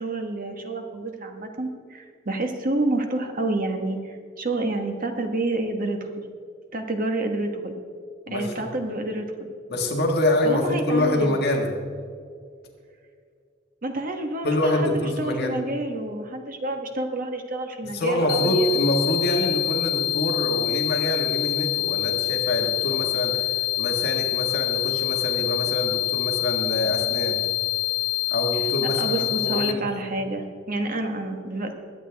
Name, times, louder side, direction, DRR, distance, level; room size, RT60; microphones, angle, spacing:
voice 1, 0.0-6.0 6.7-7.7 8.3-9.5 10.4-11.4 13.8-18.7 28.8-31.7, right 2 dB, 45° right, 4 dB, 1.3 m, -28 dB
voice 2, 9.7-11.7 14.4-15.6 17.9-27.4 28.3-29.8, left 1 dB, 50° left, 1 dB, 1.7 m, -25 dB
sound 1, 18.3-29.7, left 18 dB, 90° left, 0.4 m, -26 dB
21.0 x 8.6 x 3.5 m, 2.2 s
head